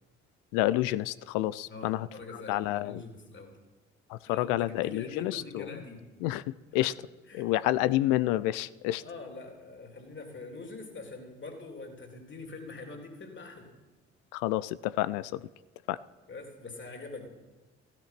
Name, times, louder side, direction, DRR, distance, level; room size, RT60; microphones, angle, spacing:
voice 1, 0.5-2.1 2.3-3.0 4.1-5.7 6.2-6.9 7.3-9.0 14.3-15.4 15.9-16.0, left 16 dB, 65° left, 18 dB, 0.6 m, -29 dB
voice 2, 1.7-3.6 4.2-6.1 6.8-6.9 7.3-7.5 9.0-13.7 16.3-17.3, left 3 dB, 35° left, 3 dB, 3.5 m, -44 dB
15.5 x 13.5 x 6.0 m, 1.2 s
figure-of-eight pair, 50°, 33 cm